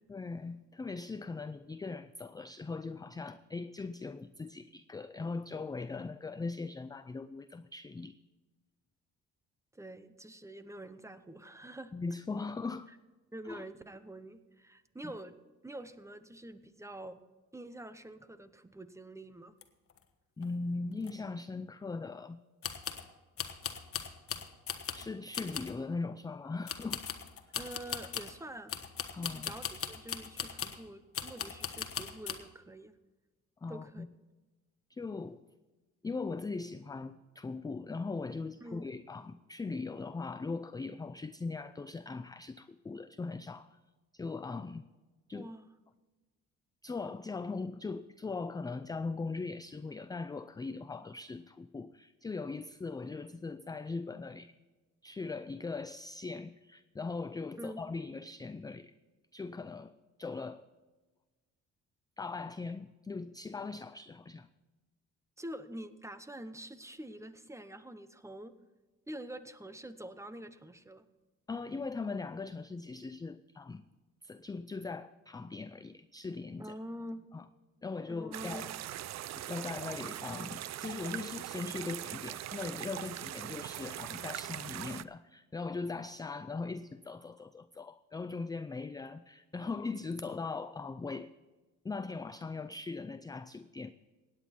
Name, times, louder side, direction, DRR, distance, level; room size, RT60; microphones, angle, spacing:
voice 1, 0.1-8.2 11.9-12.9 13.4-13.6 15.0-15.1 20.4-22.4 24.9-27.0 29.1-29.5 33.6-34.1 34.9-35.4 36.0-43.8 44.1-44.8 45.3-45.5 46.8-54.5 55.0-58.9 59.3-59.9 60.2-60.7 62.2-64.5 71.5-73.8 74.2-76.7 77.3-77.5 77.8-78.7 79.4-91.3 91.8-93.9, left 4 dB, 15° left, 12 dB, 0.4 m, -40 dB
voice 2, 9.7-11.9 13.3-17.2 17.5-19.6 27.6-28.7 29.2-32.9 33.7-34.1 38.6-38.9 45.3-45.7 57.6-57.8 65.4-68.5 69.1-71.1 76.6-77.3 78.1-78.7, right 1 dB, 10° right, 12 dB, 0.9 m, -46 dB
sound 1, 19.6-19.7 19.9-20.0 20.4-20.5 21.0-21.1 22.6-23.1 23.4-25.1 25.3-25.8 26.7-28.4 28.7-30.8 31.1-32.4, left 8 dB, 50° left, 1.2 m, -39 dB
sound 2, 78.3-85.0, right 13 dB, 60° right, 0.5 m, -41 dB
16.5 x 9.4 x 4.4 m, 1.2 s
cardioid pair, 90°, 30 cm